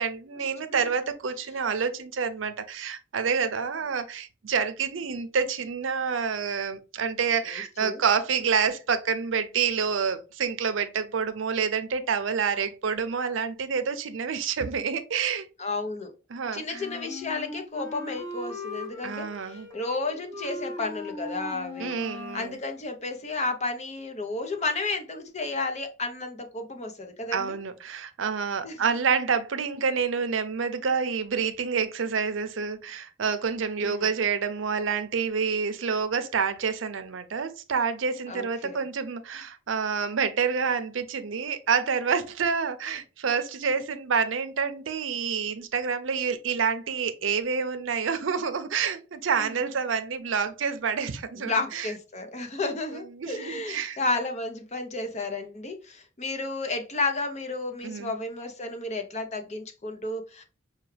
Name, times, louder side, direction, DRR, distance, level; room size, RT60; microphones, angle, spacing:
voice 1, 0.0-15.5 16.3-16.8 19.0-19.7 21.8-22.6 27.3-51.9 52.9-54.0 57.8-58.1, right 6 dB, 80° right, 0.6 m, -28 dB
voice 2, 7.5-8.0 15.6-16.1 16.5-22.0 22.3-27.5 28.6-28.8 33.8-34.1 38.3-38.8 49.4-49.7 51.4-60.4, left 3 dB, 35° left, 0.7 m, -32 dB
Wind instrument woodwind instrument, 16.7-22.5, left 2 dB, 15° left, 1.4 m, -39 dB
5.7 x 2.3 x 3.2 m
head